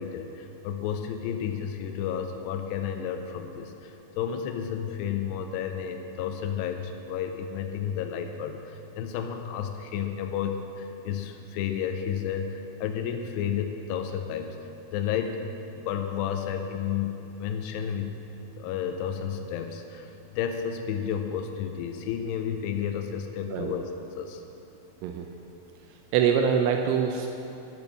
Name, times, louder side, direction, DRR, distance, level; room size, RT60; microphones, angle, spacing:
voice 1, 0.0-14.6 14.9-15.4 15.8-18.2 18.6-20.1 20.3-24.4, left 8 dB, 90° left, 6 dB, 2.4 m, -32 dB
voice 2, 26.1-27.3, right 7 dB, 85° right, 4 dB, 3.0 m, -24 dB
10.5 x 7.0 x 7.0 m, 2.8 s
omnidirectional pair, 5.5 m